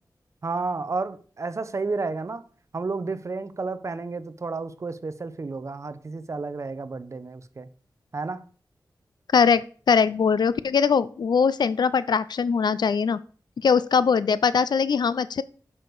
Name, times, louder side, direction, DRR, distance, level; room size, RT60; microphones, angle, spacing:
voice 1, 0.4-2.4 2.7-7.7 8.1-8.5, right 3 dB, 45° right, 0.8 m, -31 dB
voice 2, 9.3-13.2 13.6-15.4, left 6 dB, 80° left, 0.5 m, -21 dB
10.0 x 6.3 x 4.7 m
wide cardioid pair, 115°, 7 cm